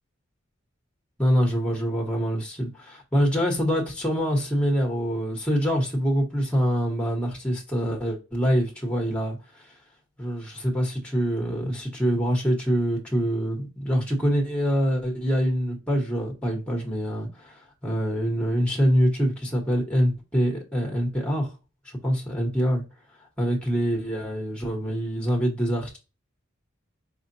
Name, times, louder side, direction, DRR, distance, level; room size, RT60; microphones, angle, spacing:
voice 1, 1.2-9.7 10.2-21.5 22.0-22.8 23.4-26.0, equal, 5° left, 1.2 m, -25 dB
5.0 x 2.5 x 2.7 m
head